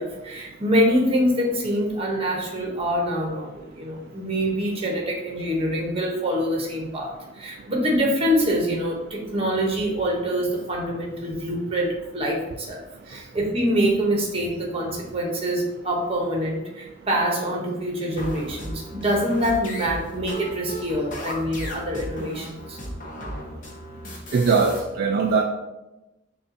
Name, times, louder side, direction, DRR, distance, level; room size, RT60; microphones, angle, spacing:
voice 1, 0.0-22.8, equal, 30° right, -1 dB, 0.9 m, -25 dB
sound 1, 18.2-24.8, equal, 45° left, 0.9 m, -35 dB
voice 2, 24.3-25.4, right 4 dB, 50° right, 1 dB, 0.3 m, -20 dB
6.4 x 2.4 x 2.7 m, 1.0 s
head